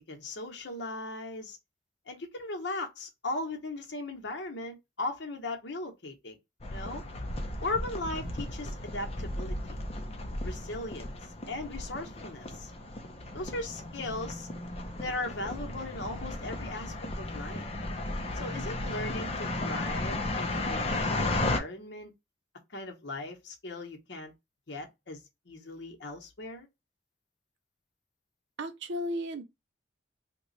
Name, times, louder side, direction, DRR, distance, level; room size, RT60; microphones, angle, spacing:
voice 1, 0.1-1.6 2.1-6.4 6.7-7.0 7.6-9.8 10.4-11.1 11.5-12.7 13.3-14.5 15.0-17.7 18.3-22.1 22.7-24.3 24.7-25.2 25.5-26.7, left 2 dB, 65° left, 0.9 m, -38 dB
sound 1, 6.6-21.6, left 2 dB, 30° left, 0.6 m, -35 dB
voice 2, 28.6-29.4, equal, 70° right, 0.6 m, -34 dB
3.0 x 2.3 x 3.9 m
head